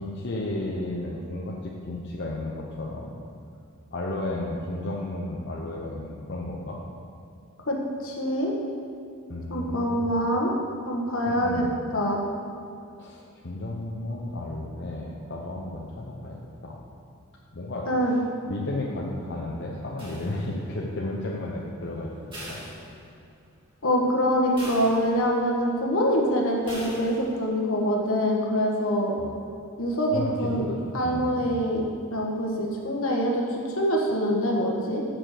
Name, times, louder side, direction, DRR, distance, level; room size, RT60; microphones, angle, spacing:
voice 1, 0.0-3.2 3.9-6.8 9.3-10.1 11.2-11.7 13.0-16.4 16.6-16.8 17.5-17.9 18.5-22.6 29.2-29.3 30.1-30.7 31.0-31.5, left 2 dB, 50° left, -3 dB, 0.8 m, -33 dB
voice 2, 8.0-8.5 9.5-10.5 10.8-11.6 11.9-12.2 17.9-18.1 23.8-29.1 29.8-30.6 30.9-31.8 32.1-35.0, equal, 70° left, -1 dB, 1.4 m, -25 dB
sound 1, 20.0-20.8 22.3-23.4 23.8-23.9 24.6-25.5 26.7-27.4, equal, 25° right, 2.3 m, -41 dB
7.0 x 6.0 x 6.5 m, 2.5 s
head